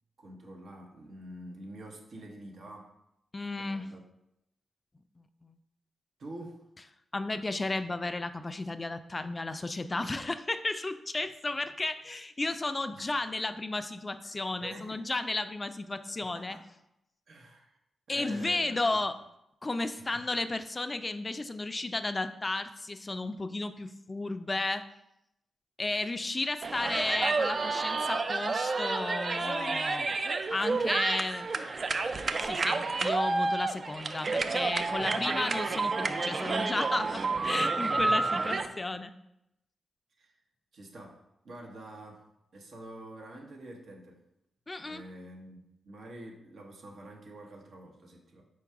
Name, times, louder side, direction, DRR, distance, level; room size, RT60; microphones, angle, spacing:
voice 1, 0.2-2.9 3.6-4.0 6.2-6.6 12.9-13.1 14.6-15.0 16.3-16.7 17.3-17.7 18.1-19.0 20.0-20.2 25.9-26.1 26.8-26.9 38.0-38.7 40.2-40.4 40.7-42.3 42.5-44.2 44.8-48.4, right 1 dB, 70° right, 1 dB, 0.8 m, -47 dB
voice 2, 3.3-3.9 5.2-5.6 7.1-16.6 18.1-19.2 19.6-24.9 25.8-30.2 30.5-31.5 32.4-39.1 44.7-45.0, left 2 dB, 35° left, 10 dB, 0.3 m, -33 dB
sound 1, 26.6-38.7, right 3 dB, 50° right, 0.3 m, -30 dB
4.5 x 2.3 x 4.6 m, 0.84 s
supercardioid pair, 40°, 0 cm